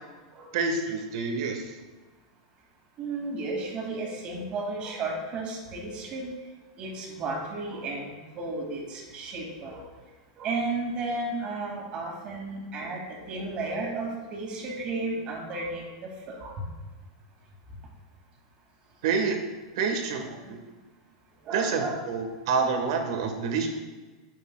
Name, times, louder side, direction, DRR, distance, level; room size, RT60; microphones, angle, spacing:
voice 1, 0.5-1.7 19.0-19.4 19.8-20.6 21.5-23.7, right 5 dB, 65° right, 5 dB, 1.4 m, -28 dB
voice 2, 3.0-6.3 6.8-9.9 10.4-16.6 20.2-20.5 21.4-22.0, right 3 dB, 35° right, 0 dB, 2.4 m, -33 dB
9.5 x 8.0 x 2.3 m, 1.3 s
supercardioid pair, 140°, 3 cm